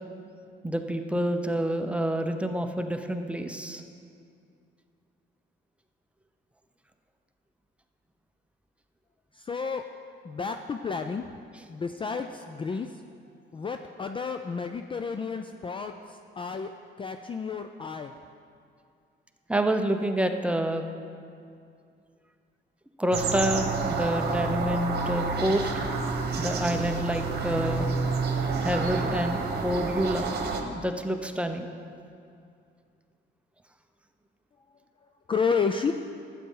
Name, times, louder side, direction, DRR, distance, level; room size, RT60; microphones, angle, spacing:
voice 1, 0.6-3.8 11.5-11.6 19.5-20.8 23.0-25.7 26.4-27.9 28.6-30.3 30.6-31.7, right 1 dB, 5° right, 6 dB, 0.7 m, -28 dB
voice 2, 9.4-9.9 10.2-11.2 11.7-12.9 13.5-16.7 17.0-18.1 35.3-35.9, left 5 dB, 25° left, 7 dB, 0.4 m, -31 dB
sound 1, 23.1-30.6, right 4 dB, 55° right, 1.1 m, -29 dB
12.0 x 8.4 x 3.8 m, 2.4 s
cardioid pair, 90°, 20 cm